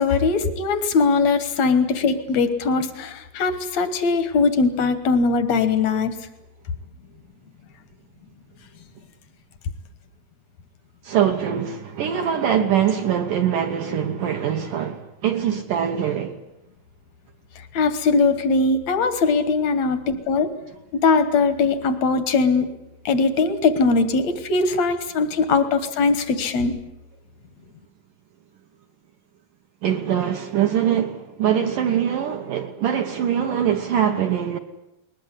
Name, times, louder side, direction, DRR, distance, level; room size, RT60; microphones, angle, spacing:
voice 1, 0.0-6.1 17.7-20.5 20.9-22.7 23.0-26.7, left 4 dB, 70° left, 1.7 m, -20 dB
voice 2, 11.0-16.4 29.8-34.6, right 9 dB, 70° right, 2.0 m, -23 dB
21.0 x 20.5 x 9.8 m
omnidirectional pair, 5.1 m